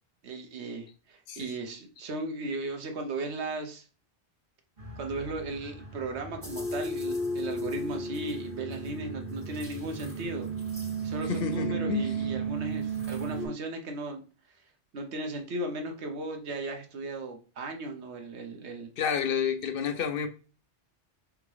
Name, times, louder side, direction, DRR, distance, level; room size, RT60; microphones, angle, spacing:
voice 1, 0.2-3.9 5.0-10.5 11.0-14.2 14.9-18.9, right 2 dB, 90° right, 1.2 m, -36 dB
sound 1, 4.8-13.5, right 3 dB, 55° right, 2.5 m, -34 dB
voice 2, 11.3-12.1 19.0-20.3, left 7 dB, 60° left, 0.7 m, -30 dB
3.7 x 3.5 x 3.3 m
omnidirectional pair, 1.1 m